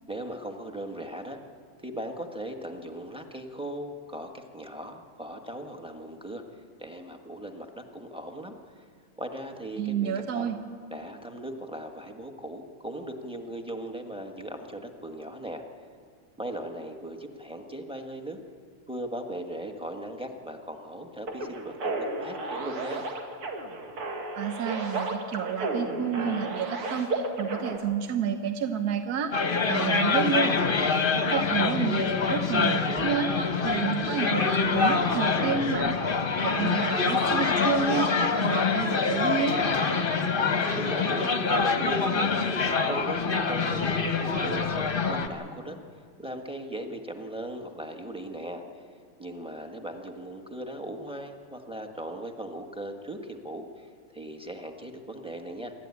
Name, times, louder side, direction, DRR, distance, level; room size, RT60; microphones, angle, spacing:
voice 1, 0.1-1.4 1.8-6.4 6.8-8.5 9.2-10.5 10.9-15.6 16.4-18.4 18.9-23.1 40.7-42.5 42.9-45.8 46.2-48.6 49.2-53.9 54.1-55.7, right 1 dB, 5° right, 4 dB, 1.0 m, -38 dB
voice 2, 9.8-10.6 24.4-29.3 29.7-30.6 31.3-39.6, right 7 dB, 55° right, 6 dB, 1.2 m, -30 dB
sound 1, 21.3-27.8, right 2 dB, 80° right, 3.0 m, -33 dB
sound 2, 29.3-45.3, left 4 dB, 35° left, 1.0 m, -25 dB
26.5 x 13.0 x 9.7 m, 2.1 s
omnidirectional pair, 2.4 m